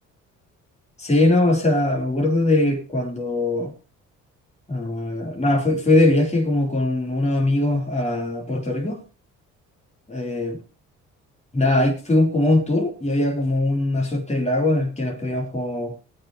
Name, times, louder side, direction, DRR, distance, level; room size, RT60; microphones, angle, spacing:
voice 1, 1.0-3.7 4.7-9.0 10.1-10.6 11.5-16.0, left 2 dB, 20° left, 4.1 m, -21 dB
17.5 x 9.3 x 3.2 m
hypercardioid pair, 50°, 37 cm